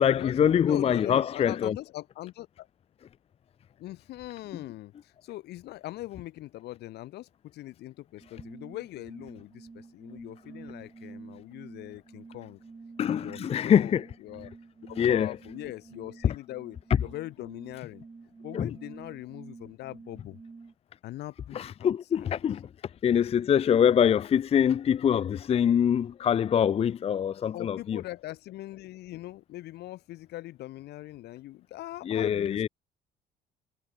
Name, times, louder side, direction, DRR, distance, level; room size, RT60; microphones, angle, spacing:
voice 1, 0.0-1.8 13.0-14.1 15.0-15.4 16.2-16.3 18.5-18.7 21.5-22.7 23.0-28.0 32.0-32.7, left 8 dB, 35° left, 0.5 m, -24 dB
voice 2, 0.6-2.7 3.8-12.6 13.0-14.5 14.9-18.0 18.4-20.4 21.0-22.3 27.5-32.7, left 16 dB, 75° left, 3.1 m, -41 dB
sound 1, 8.2-20.7, right 4 dB, 25° right, 4.8 m, -49 dB
cardioid pair, 110°, 17 cm